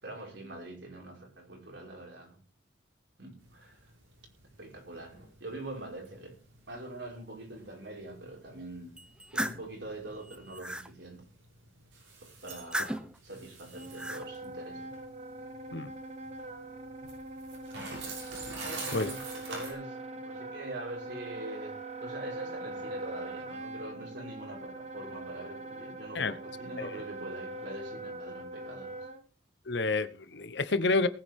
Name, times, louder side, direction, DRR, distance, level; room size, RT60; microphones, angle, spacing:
voice 1, 0.0-2.4 3.2-3.9 4.6-6.4 6.7-9.0 9.3-11.3 12.2-14.9 18.6-29.1, right 1 dB, 65° right, 5.1 m, -44 dB
sound 1, 3.4-19.7, right 3 dB, 85° right, 6.6 m, -47 dB
sound 2, 9.0-9.7 10.2-10.9 12.5-13.2 13.7-14.2, right 1 dB, 5° right, 0.8 m, -36 dB
Wind instrument woodwind instrument, 13.7-29.2, right 2 dB, 35° right, 1.2 m, -42 dB
voice 2, 29.7-31.1, left 3 dB, 60° left, 0.9 m, -29 dB
19.5 x 9.6 x 3.6 m
head